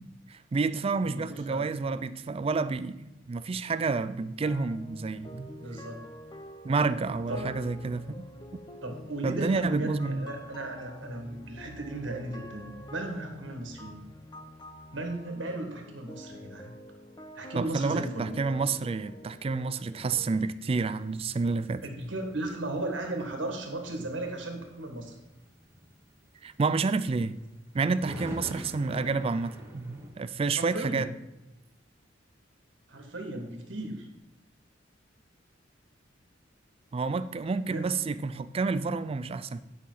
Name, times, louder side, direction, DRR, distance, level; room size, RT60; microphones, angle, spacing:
voice 1, 0.0-5.5 6.6-8.3 9.2-10.3 17.5-21.8 26.4-27.3 27.7-31.1 36.9-39.6, right 4 dB, 30° right, 0.4 m, -29 dB
voice 2, 1.0-1.7 5.6-6.0 7.3-7.5 8.8-14.1 14.9-16.7 17.3-18.3 21.8-25.1 30.6-31.1 32.9-34.1 37.7-37.9, right 2 dB, 75° right, 1.7 m, -36 dB
sound 1, 4.4-20.4, left 1 dB, 25° left, 0.6 m, -47 dB
sound 2, 21.0-30.1, equal, 15° right, 1.6 m, -47 dB
10.0 x 5.9 x 3.9 m
head